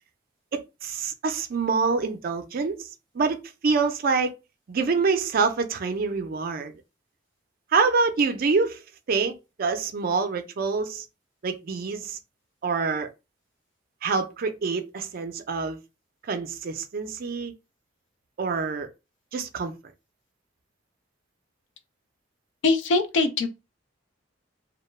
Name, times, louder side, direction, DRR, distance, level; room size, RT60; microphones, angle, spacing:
voice 1, 0.5-2.9 3.1-3.4 3.6-4.3 4.7-6.7 7.7-8.8 9.1-11.0 11.4-12.2 12.6-13.1 14.0-15.8 16.3-17.5 18.4-18.9 19.3-19.7, right 4 dB, 50° right, 0.4 m, -26 dB
voice 2, 22.6-23.5, left 3 dB, 70° left, 0.4 m, -22 dB
2.2 x 2.1 x 3.1 m
head